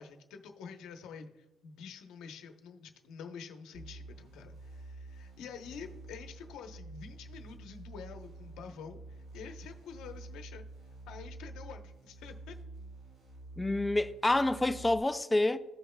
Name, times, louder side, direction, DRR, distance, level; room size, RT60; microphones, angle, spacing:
voice 1, 0.0-10.6 11.1-12.6, left 6 dB, 75° left, 0.9 m, -48 dB
sound 1, 3.7-15.0, right 2 dB, 55° right, 2.9 m, -48 dB
voice 2, 13.6-15.6, left 2 dB, 10° left, 0.3 m, -28 dB
16.0 x 5.5 x 2.2 m
cardioid pair, 170°, 0 cm